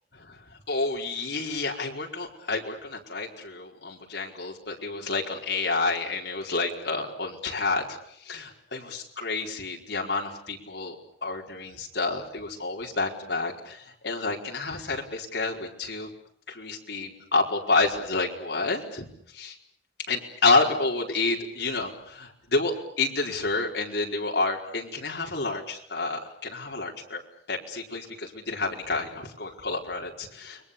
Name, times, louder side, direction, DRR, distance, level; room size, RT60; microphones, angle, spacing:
voice 1, 0.1-8.0 8.2-10.9 11.2-16.1 16.6-19.5 20.1-27.2 27.5-30.7, left 3 dB, 70° left, 1 dB, 4.8 m, -29 dB
30.0 x 23.0 x 7.0 m, 0.67 s
head